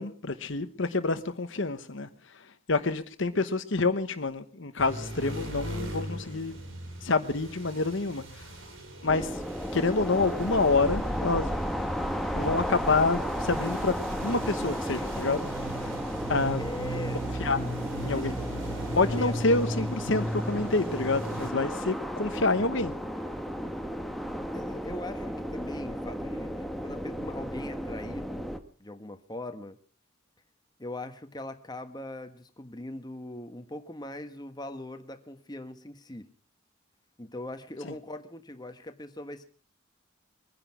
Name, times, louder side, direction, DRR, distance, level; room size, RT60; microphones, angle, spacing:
voice 1, 0.0-2.1 2.7-6.6 7.0-8.2 9.0-9.3 9.7-11.5 12.4-13.9 14.2-15.5 16.3-16.6 17.4-17.7 18.0-18.4 18.9-22.9 37.8-37.9, left 3 dB, 60° left, 1.1 m, -27 dB
sound 1, 4.8-21.5, right 1 dB, 65° right, 5.4 m, -38 dB
sound 2, 9.1-28.6, equal, ahead, 1.3 m, -34 dB
voice 2, 16.6-17.2 18.0-18.6 19.2-19.3 24.5-28.5 28.8-29.8 30.8-36.3 37.2-39.4, left 1 dB, 20° left, 1.3 m, -41 dB
23.0 x 10.5 x 6.0 m
head